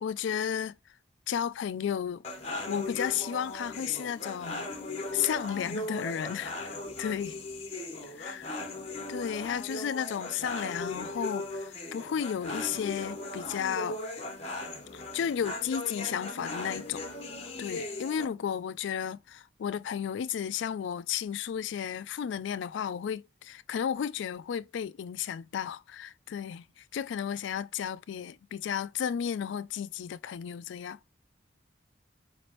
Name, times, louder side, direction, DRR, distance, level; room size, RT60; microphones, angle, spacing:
voice 1, 0.0-0.8 1.3-2.2 2.7-4.6 5.1-6.7 7.0-7.4 8.0-8.6 9.1-14.0 14.9-17.0 17.6-31.0, left 8 dB, 75° left, 0.3 m, -33 dB
sound 1, 2.2-18.3, left 2 dB, 35° left, 1.0 m, -38 dB
5.0 x 3.1 x 2.9 m
head